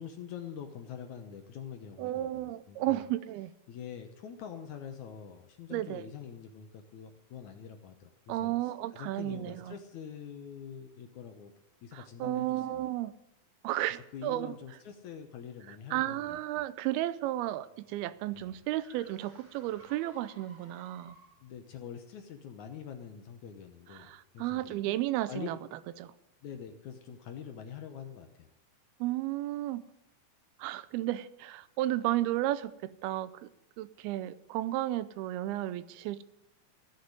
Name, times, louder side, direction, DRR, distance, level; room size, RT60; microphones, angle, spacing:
voice 1, 0.0-3.0 3.7-8.5 8.9-11.5 11.8-12.9 14.1-16.4 18.3-18.5 21.4-24.8 25.3-25.5 26.4-28.5, left 8 dB, 70° left, 2.0 m, -45 dB
voice 2, 2.0-3.5 5.7-6.1 8.3-9.8 11.9-13.2 13.6-14.5 15.7-21.2 23.9-25.6 26.0-26.1 29.0-29.8 30.6-33.5 33.8-36.2, right 15 dB, 90° right, 2.6 m, -33 dB
sound 1, 17.6-21.5, right 2 dB, 35° right, 6.5 m, -58 dB
14.5 x 6.7 x 9.6 m
omnidirectional pair, 4.3 m